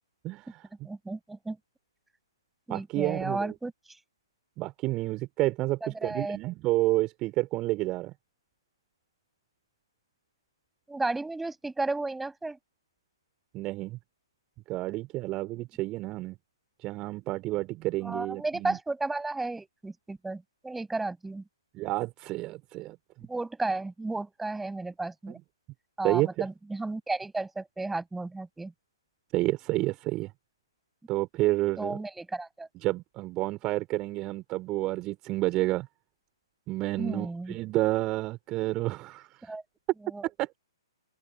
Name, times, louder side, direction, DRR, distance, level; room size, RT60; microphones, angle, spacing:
voice 1, 0.2-0.6 2.7-3.5 4.6-8.1 13.5-14.0 14.7-16.3 16.8-18.8 21.7-23.0 26.0-26.5 29.3-30.3 31.1-32.0 32.8-35.9 36.7-39.4 40.4-40.5, right 18 dB, 25° right, 3.4 m, -30 dB
voice 2, 0.8-1.6 2.7-3.7 5.8-6.4 10.9-12.6 18.0-21.4 23.3-25.4 26.0-28.7 31.8-32.7 37.0-37.6 39.5-39.6 40.0-40.3, right 2 dB, 5° right, 6.7 m, -33 dB
open air
figure-of-eight pair, 125°, 3 cm